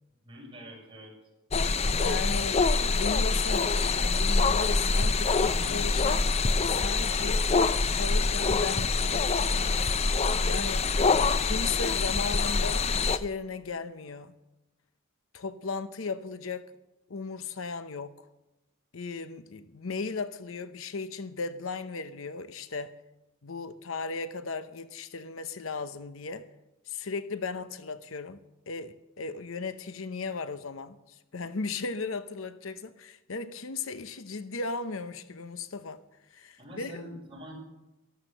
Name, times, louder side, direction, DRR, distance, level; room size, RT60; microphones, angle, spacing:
voice 1, 0.2-1.1 5.3-5.9 36.6-37.5, equal, 25° right, 6.3 m, -45 dB
sound 1, 1.5-13.2, left 4 dB, 30° left, 0.5 m, -25 dB
voice 2, 2.0-6.3 6.6-9.4 10.4-10.9 11.4-14.3 15.3-16.7 17.1-18.1 18.9-22.9 23.4-26.5 26.9-36.0 36.3-37.0, left 4 dB, 70° left, 0.8 m, -36 dB
13.5 x 12.0 x 6.6 m
head